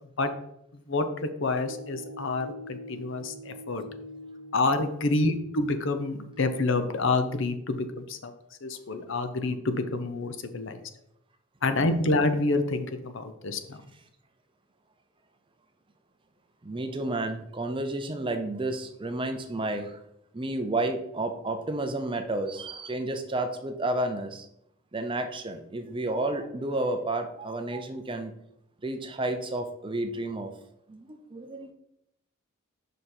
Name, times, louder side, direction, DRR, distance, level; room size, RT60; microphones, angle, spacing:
voice 1, 0.7-3.8 4.5-8.3 8.6-10.8 11.6-13.8, left 2 dB, 60° left, 8 dB, 0.7 m, -28 dB
sound 1, 1.7-7.2, left 1 dB, 75° right, 1.0 m, -45 dB
voice 2, 16.6-20.0 20.3-24.5 24.9-28.3 28.8-30.5 30.9-31.7, right 2 dB, 25° right, 7 dB, 0.6 m, -31 dB
6.6 x 5.1 x 4.4 m, 0.78 s
head